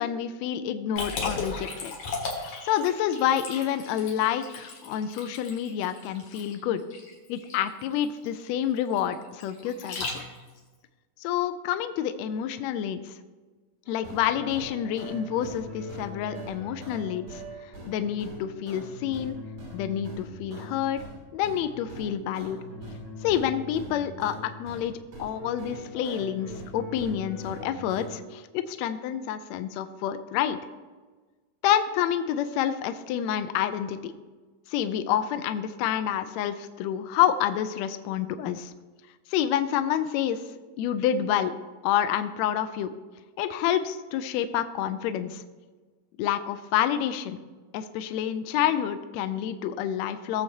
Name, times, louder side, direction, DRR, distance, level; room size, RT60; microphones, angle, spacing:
voice 1, 0.0-1.9 2.6-6.8 7.3-10.2 11.2-13.1 13.9-19.4 19.7-21.0 21.3-22.6 23.2-24.9 25.2-30.6 31.6-34.1 34.7-38.7 39.3-40.4 40.8-41.5 41.8-42.9 43.4-45.4 46.2-47.4 47.7-50.4, left 10 dB, 85° left, 10 dB, 1.6 m, -28 dB
Liquid, 1.0-10.6, left 3 dB, 65° left, 2.9 m, -37 dB
sound 1, 13.8-21.2 21.4-24.9 25.1-28.2, equal, 70° right, 4.8 m, -41 dB
17.5 x 7.2 x 2.8 m, 1.3 s
omnidirectional pair, 3.8 m